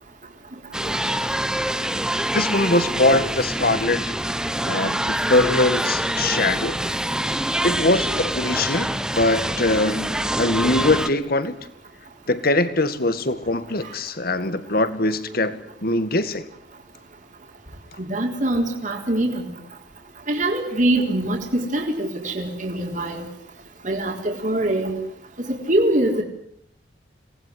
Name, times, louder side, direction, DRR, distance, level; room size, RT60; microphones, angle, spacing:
sound 1, 0.7-11.1, right 1 dB, 5° right, 1.0 m, -25 dB
voice 1, 2.3-4.1 4.7-6.8 7.6-11.6 12.3-16.5, left 2 dB, 55° left, 12 dB, 2.0 m, -22 dB
voice 2, 18.1-19.5 20.3-23.2 23.8-25.0 25.4-26.2, right 1 dB, 45° right, 2 dB, 3.9 m, -23 dB
27.0 x 19.5 x 9.6 m, 0.71 s
head